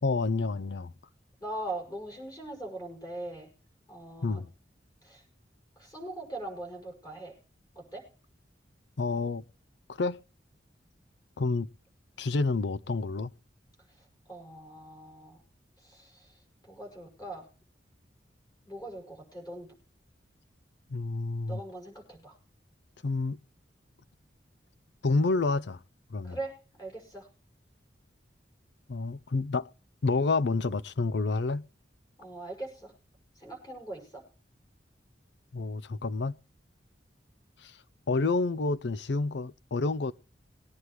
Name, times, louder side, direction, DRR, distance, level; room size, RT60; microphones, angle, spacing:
voice 1, 0.0-0.9 4.2-4.5 9.0-9.4 9.9-10.2 11.4-11.7 12.2-13.3 20.9-21.6 23.0-23.4 25.0-25.8 26.1-26.4 28.9-29.7 30.0-31.7 35.5-36.4 37.6-37.8 38.1-40.1, left 3 dB, 65° left, 0.5 m, -29 dB
voice 2, 1.4-3.5 3.9-4.4 5.0-5.2 5.8-7.4 7.7-8.1 14.0-15.4 15.8-16.4 16.7-17.5 18.7-19.7 21.5-22.4 26.2-27.3 32.2-32.9 33.4-34.2, right 2 dB, 20° left, 6.0 m, -41 dB
21.5 x 9.7 x 3.0 m
head